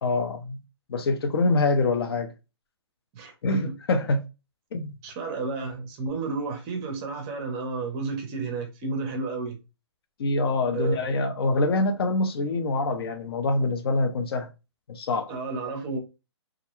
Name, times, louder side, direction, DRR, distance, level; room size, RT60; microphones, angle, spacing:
voice 1, 0.0-0.6 0.9-2.3 3.4-4.2 4.7-4.9 10.2-14.5 14.9-15.3, left 2 dB, 55° left, 0.6 m, -25 dB
voice 2, 3.1-3.7 5.0-9.6 10.7-11.0 15.3-16.0, right 4 dB, 20° right, 0.6 m, -31 dB
2.4 x 2.2 x 2.9 m
hypercardioid pair, 160°, 15 cm